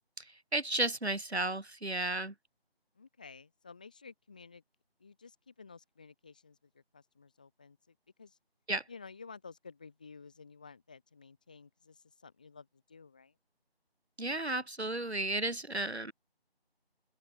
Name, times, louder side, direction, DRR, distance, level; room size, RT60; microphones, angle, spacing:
voice 1, 0.5-2.3 8.7-8.8 14.2-16.1, right 2 dB, 90° right, 6.7 m, -33 dB
voice 2, 2.9-4.6 5.0-8.4 8.9-13.3, left 5 dB, 10° left, 2.6 m, -53 dB
open air
figure-of-eight pair, 180°, 31 cm